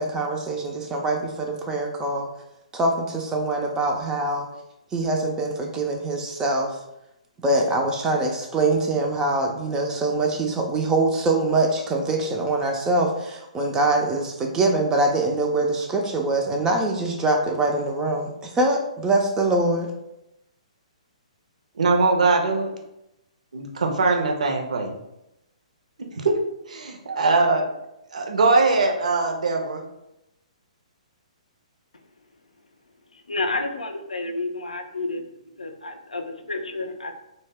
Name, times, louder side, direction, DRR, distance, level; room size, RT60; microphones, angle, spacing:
voice 1, 0.0-2.3 2.7-4.5 4.9-6.8 7.4-19.9, right 2 dB, 15° right, 1 dB, 0.3 m, -24 dB
voice 2, 21.8-22.7 23.5-25.0 26.1-26.4 26.7-27.7 28.1-29.8, right 3 dB, 70° right, 3 dB, 0.5 m, -21 dB
voice 3, 33.3-35.2 35.6-37.1, left 2 dB, 85° left, 6 dB, 0.4 m, -30 dB
2.1 x 2.1 x 3.4 m, 0.86 s
figure-of-eight pair, 125°, 4 cm